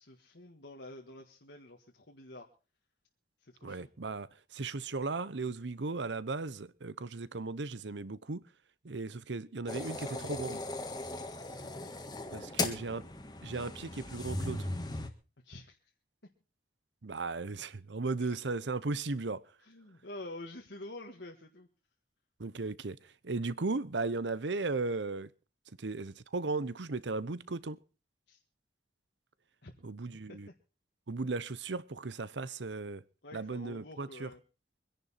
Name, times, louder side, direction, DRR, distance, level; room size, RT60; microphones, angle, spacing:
voice 1, 0.0-2.4 3.4-3.9 11.6-11.8 15.4-15.8 18.2-18.3 19.6-21.7 28.3-28.4 29.6-29.7 30.3-30.4 33.2-34.4, left 2 dB, 75° left, 1.7 m, -48 dB
voice 2, 3.6-4.3 4.5-8.4 8.8-10.6 12.3-13.1 13.4-14.7 17.0-19.4 22.4-23.0 23.2-25.3 25.8-27.8 29.8-30.5 31.1-33.0 33.3-34.3, right 3 dB, 80° right, 0.8 m, -36 dB
sound 1, 9.7-15.1, left 2 dB, 20° left, 1.6 m, -38 dB
24.0 x 10.5 x 4.2 m
head